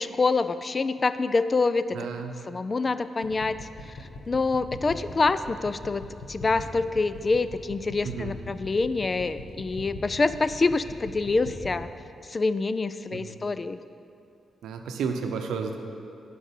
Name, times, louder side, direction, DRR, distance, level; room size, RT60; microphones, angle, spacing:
voice 1, 0.0-1.8 2.5-3.6 4.3-6.0 6.3-11.9 12.3-13.8, left 3 dB, 40° left, 13 dB, 0.4 m, -26 dB
voice 2, 1.9-2.4 8.0-8.3 13.1-13.4 14.6-15.8, right 5 dB, 85° right, 5 dB, 0.7 m, -32 dB
sound 1, 3.2-11.8, left 2 dB, 90° left, 1.4 m, -40 dB
11.5 x 5.0 x 5.2 m, 2.6 s
cardioid pair, 60°, 0 cm